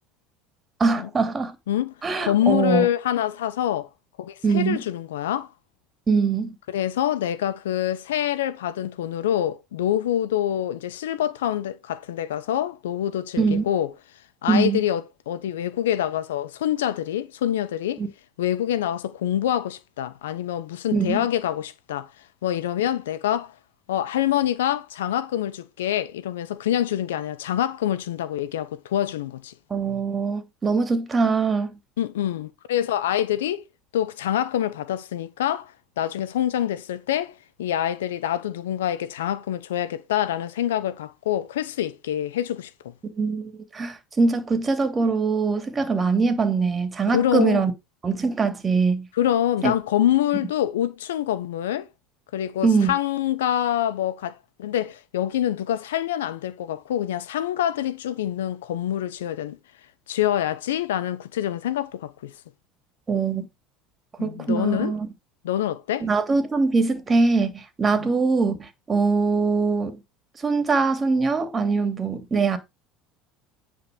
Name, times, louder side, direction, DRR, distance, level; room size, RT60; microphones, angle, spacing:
voice 1, 0.8-1.5 2.0-2.8 4.4-4.8 6.1-6.6 13.4-13.6 14.5-14.8 18.0-18.1 20.9-21.2 29.7-31.7 43.1-47.7 48.0-49.1 49.6-49.7 52.6-52.9 63.1-63.5 64.2-65.1 66.0-70.0 70.4-72.6, right 4 dB, 25° right, 2.9 m, -22 dB
voice 2, 2.2-3.9 4.2-5.5 6.7-13.9 14.4-18.0 18.4-22.1 22.4-23.5 23.9-29.5 32.0-33.6 33.9-37.3 37.6-42.9 47.1-47.6 49.2-51.9 52.3-59.6 60.1-62.3 64.2-64.9 65.4-66.1 67.9-68.1, left 11 dB, 85° left, 1.0 m, -26 dB
9.9 x 4.9 x 5.3 m
hypercardioid pair, 80°, 0 cm